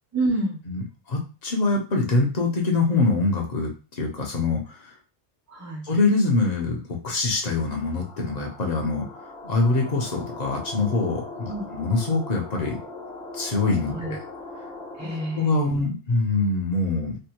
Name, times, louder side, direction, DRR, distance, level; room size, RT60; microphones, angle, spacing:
voice 1, 0.1-0.6 5.5-5.8 11.5-11.7 13.9-14.2 14.9-15.7, right 2 dB, 25° right, -2 dB, 0.4 m, -28 dB
voice 2, 1.1-4.9 5.8-9.1 9.4-12.8 13.3-14.2 15.4-17.2, left 3 dB, 45° left, 0 dB, 0.9 m, -24 dB
sound 1, 7.4-15.7, left 2 dB, 80° left, 1.1 m, -40 dB
3.4 x 2.4 x 2.9 m, 0.33 s
omnidirectional pair, 1.1 m